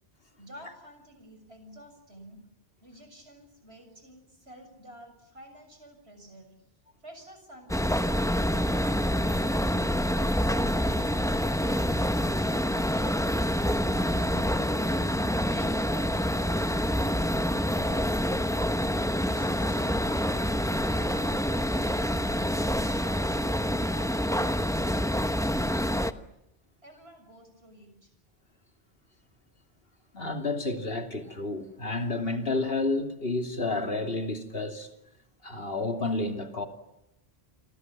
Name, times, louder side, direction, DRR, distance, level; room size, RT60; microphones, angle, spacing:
voice 1, 0.4-2.4 2.8-6.5 7.0-9.9 15.5-17.4 17.8-18.8 19.2-22.6 25.7-26.2 26.8-28.1, equal, 80° right, 7.3 m, -50 dB
sound 1, 7.7-26.1, equal, 5° left, 1.0 m, -27 dB
voice 2, 30.1-34.9 35.4-36.7, left 2 dB, 65° left, 3.1 m, -30 dB
30.0 x 24.0 x 7.5 m
omnidirectional pair, 1.1 m